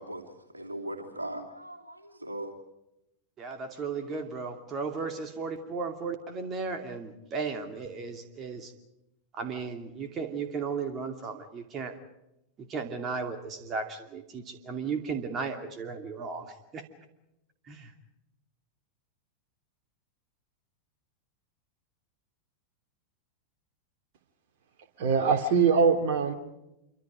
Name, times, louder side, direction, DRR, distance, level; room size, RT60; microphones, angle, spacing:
voice 1, 0.0-2.5, right 1 dB, 80° right, 3 dB, 3.0 m, -39 dB
voice 2, 3.4-8.7 9.3-12.0 12.6-16.8 17.7-17.9, right 5 dB, 30° right, 6 dB, 2.6 m, -35 dB
voice 3, 25.0-26.3, right 5 dB, 50° right, 6 dB, 3.1 m, -22 dB
27.5 x 25.0 x 5.0 m, 0.88 s
figure-of-eight pair, 90°, 0 cm